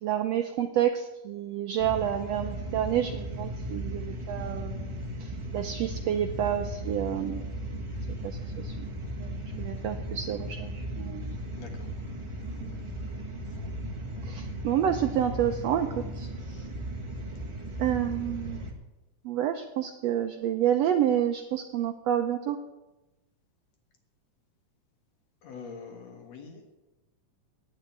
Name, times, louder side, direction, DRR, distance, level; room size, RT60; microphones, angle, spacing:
voice 1, 0.0-7.4 8.2-8.9 9.1-11.3 12.6-12.8 14.2-16.3 17.8-18.7 19.2-22.6, right 10 dB, 80° right, 7 dB, 1.5 m, -29 dB
sound 1, 1.8-18.7, equal, 40° right, 0.4 m, -36 dB
voice 2, 11.6-11.9 25.4-26.8, left 5 dB, 60° left, 3 dB, 2.6 m, -44 dB
10.5 x 8.4 x 9.5 m, 1.0 s
omnidirectional pair, 3.7 m